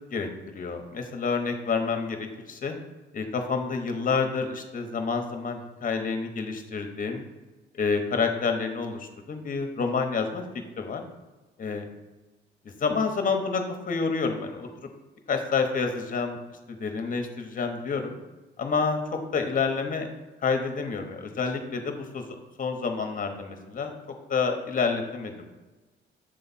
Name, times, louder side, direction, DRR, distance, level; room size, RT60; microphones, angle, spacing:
voice 1, 0.1-2.7 3.1-7.2 7.8-10.4 10.8-11.0 11.6-11.9 12.8-14.7 15.3-16.4 16.7-18.2 18.6-19.0 19.3-20.1 20.4-22.2 22.6-23.9 24.3-25.5, left 5 dB, 45° left, 5 dB, 1.0 m, -28 dB
7.6 x 3.3 x 4.1 m, 1.2 s
cardioid pair, 90°, 20 cm